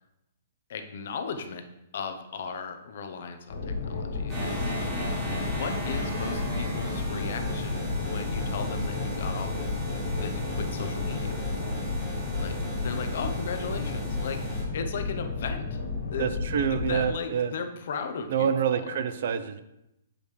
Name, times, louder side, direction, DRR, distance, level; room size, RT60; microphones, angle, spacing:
voice 1, 0.7-1.6 1.9-5.0 5.4-9.5 10.2-11.4 12.4-12.6 12.8-15.8 16.1-16.3 16.7-19.0, left 5 dB, 55° left, 6 dB, 0.8 m, -37 dB
sound 1, 3.5-17.1, left 4 dB, 85° left, 2.1 m, -32 dB
sound 2, 4.3-14.6, equal, 10° right, 2.8 m, -35 dB
voice 2, 16.2-17.5 18.3-19.6, right 7 dB, 55° right, 11 dB, 0.5 m, -27 dB
8.9 x 5.2 x 3.2 m, 0.87 s
hypercardioid pair, 165°, 0 cm